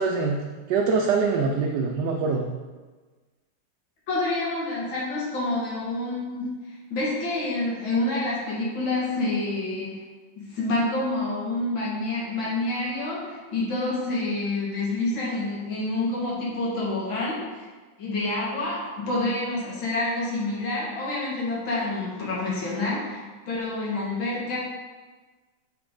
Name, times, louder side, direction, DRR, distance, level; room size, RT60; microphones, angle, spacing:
voice 1, 0.0-2.5, right 4 dB, 75° right, 1 dB, 1.1 m, -24 dB
voice 2, 4.1-6.5 6.9-9.9 10.4-17.7 18.0-24.6, left 2 dB, 80° left, -5 dB, 2.4 m, -28 dB
7.5 x 3.9 x 3.7 m, 1.3 s
omnidirectional pair, 2.1 m